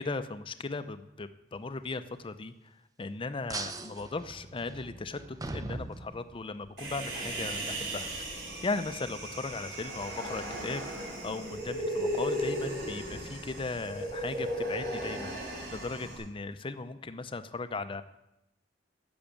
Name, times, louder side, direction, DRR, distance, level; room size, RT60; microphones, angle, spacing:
voice 1, 0.0-2.7 3.0-8.3 8.6-18.0, left 3 dB, 30° left, 12 dB, 0.5 m, -37 dB
sound 1, 3.5-6.7, right 2 dB, 20° right, 0.6 m, -40 dB
Human voice, 6.8-16.2, right 1 dB, 80° right, 4.6 m, -36 dB
10.5 x 7.1 x 7.1 m, 0.90 s
head